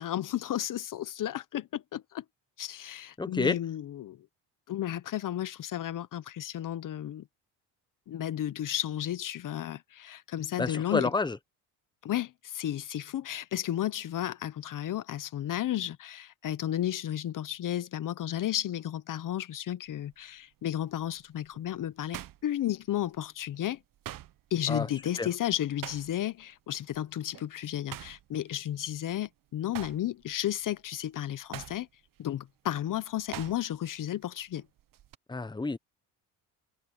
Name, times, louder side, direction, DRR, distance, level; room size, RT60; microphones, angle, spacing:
voice 1, 0.0-2.2 2.6-4.2 4.7-7.2 8.1-11.1 12.0-23.8 24.5-31.9 32.2-34.6, left 12 dB, 55° left, 1.1 m, -33 dB
voice 2, 3.2-3.6 10.6-11.4 24.7-24.9 25.2-25.3 35.3-35.8, left 3 dB, 10° left, 1.1 m, -29 dB
sound 1, 19.9-20.2 20.7-23.2 23.5-26.4 26.8-27.0 27.3-29.3 29.6-34.0 34.2-35.1, right 13 dB, 55° right, 1.2 m, -45 dB
cardioid pair, 90°, 39 cm